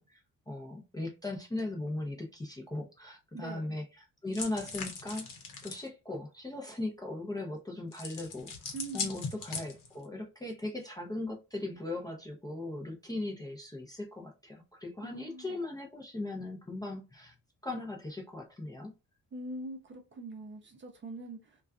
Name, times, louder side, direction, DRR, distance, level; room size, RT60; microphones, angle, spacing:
voice 1, 0.0-3.8 4.2-5.3 5.6-8.5 8.9-17.3 17.6-18.9, left 2 dB, 10° left, 0.4 m, -38 dB
voice 2, 3.3-3.8 8.7-9.2 15.0-15.6 19.3-21.6, right 2 dB, 35° right, 0.6 m, -43 dB
sound 1, 4.3-5.9 7.9-10.0, left 5 dB, 70° left, 0.9 m, -40 dB
2.4 x 2.3 x 2.2 m
cardioid pair, 120°, 33 cm